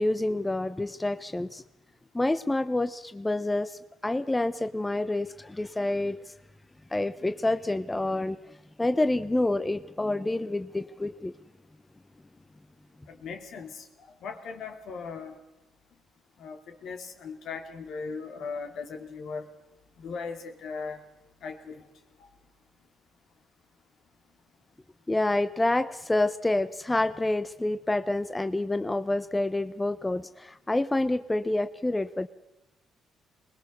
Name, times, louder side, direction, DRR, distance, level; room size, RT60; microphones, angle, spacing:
voice 1, 0.0-1.6 2.1-6.2 6.9-8.4 8.8-11.3 25.1-32.3, left 2 dB, 15° left, 13 dB, 0.6 m, -28 dB
voice 2, 13.1-13.9 14.2-15.3 16.4-19.5 20.0-21.0 21.4-21.8 22.2-22.3, left 5 dB, 70° left, 6 dB, 2.7 m, -38 dB
21.0 x 20.0 x 6.7 m, 0.94 s
cardioid pair, 90°, 0 cm